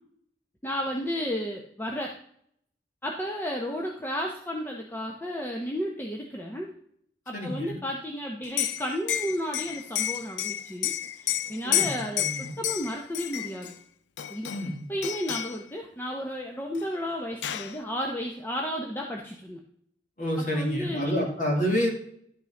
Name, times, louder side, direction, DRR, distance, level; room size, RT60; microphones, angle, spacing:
voice 1, 0.6-2.2 3.0-6.7 7.3-10.9 11.2-13.7 14.3-14.5 14.9-19.6 20.5-21.3, equal, 10° left, -1 dB, 0.8 m, -33 dB
voice 2, 7.3-7.8 11.6-12.5 14.5-14.8 20.2-21.9, equal, 45° left, -1 dB, 2.5 m, -29 dB
Liquid, 8.4-13.7 14.2-14.7 15.0-15.6 16.8-16.9 17.1-17.8, left 12 dB, 80° left, 0.5 m, -30 dB
11.5 x 5.5 x 3.7 m, 0.67 s
head